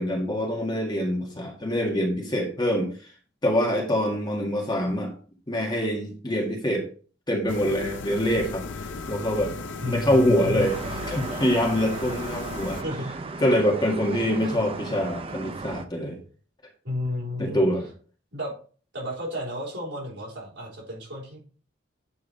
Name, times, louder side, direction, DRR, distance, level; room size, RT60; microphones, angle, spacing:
voice 1, 0.0-2.9 3.4-5.1 5.5-6.8 7.3-8.6 9.1-9.5 9.9-10.8 11.1-12.8 13.4-16.2 17.4-17.9, equal, 25° left, 0 dB, 1.8 m, -25 dB
sound 1, 7.5-12.8, left 3 dB, 70° left, 0.6 m, -36 dB
voice 2, 9.8-10.7 12.8-13.1 16.8-17.6 18.3-18.5 18.9-21.4, left 1 dB, 65° right, -2 dB, 4.0 m, -32 dB
sound 2, 10.6-15.9, right 3 dB, 30° right, 0.6 m, -36 dB
8.4 x 4.6 x 4.2 m, 0.40 s
head